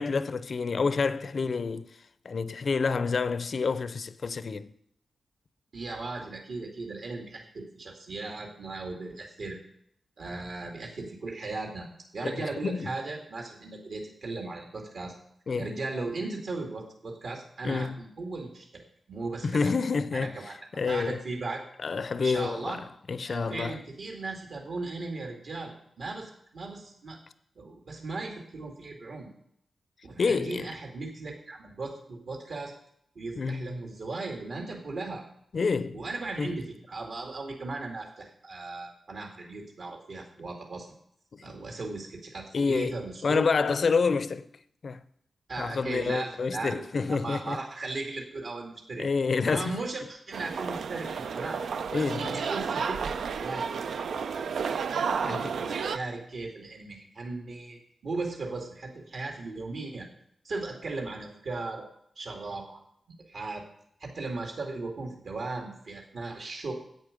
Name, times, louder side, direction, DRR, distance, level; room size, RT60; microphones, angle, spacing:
voice 1, 0.0-1.9 2.2-4.7 12.2-12.9 15.5-15.7 17.6-18.0 19.4-21.2 21.8-23.8 30.2-30.7 33.4-33.7 35.5-36.0 36.4-36.6 41.3-41.4 42.5-43.0 43.2-44.5 44.8-45.0 45.6-47.6 49.0-49.8 51.9-52.4 55.2-55.5, left 4 dB, 50° left, 0.5 m, -28 dB
voice 2, 5.7-9.6 10.2-11.9 12.1-15.1 15.6-19.7 20.1-20.5 20.9-21.6 22.2-22.8 23.2-27.2 27.6-29.3 30.0-32.7 33.2-35.2 35.9-40.9 41.4-43.4 45.5-49.1 49.4-51.6 51.9-53.1 53.4-54.8 55.2-60.1 60.4-61.9 62.2-62.8 63.3-63.6 64.0-66.7, right 3 dB, 65° right, 2.2 m, -37 dB
sound 1, 50.3-56.0, right 6 dB, 90° right, 0.5 m, -32 dB
10.5 x 8.5 x 5.2 m
wide cardioid pair, 135°, 0 cm